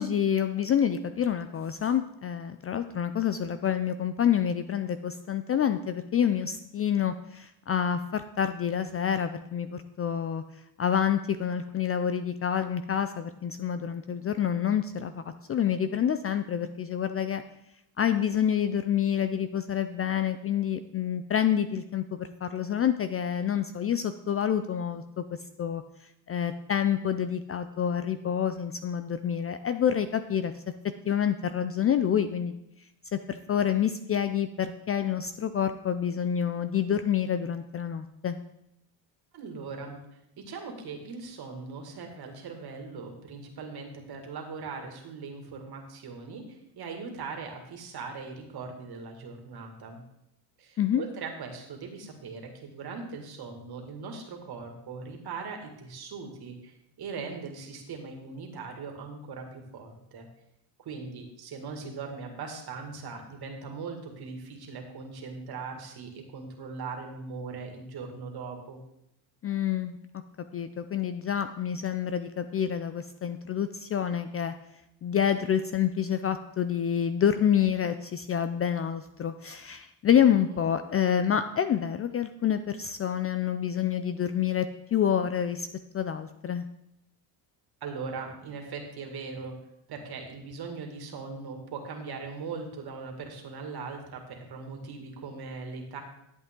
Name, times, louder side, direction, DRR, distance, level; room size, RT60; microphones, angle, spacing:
voice 1, 0.0-10.4 10.8-15.2 15.5-17.4 18.0-25.2 25.6-25.8 26.3-30.5 31.1-32.5 33.1-38.4 50.8-51.0 69.4-70.2 70.5-74.5 75.0-85.7 85.9-86.6, left 9 dB, 30° left, 11 dB, 0.4 m, -27 dB
voice 2, 39.3-40.0 40.4-50.0 50.6-60.3 60.8-68.8 80.5-80.6 87.8-89.5 89.9-96.0, right 4 dB, 50° right, 3 dB, 2.2 m, -40 dB
11.5 x 8.0 x 3.7 m, 0.81 s
cardioid pair, 110°, 47 cm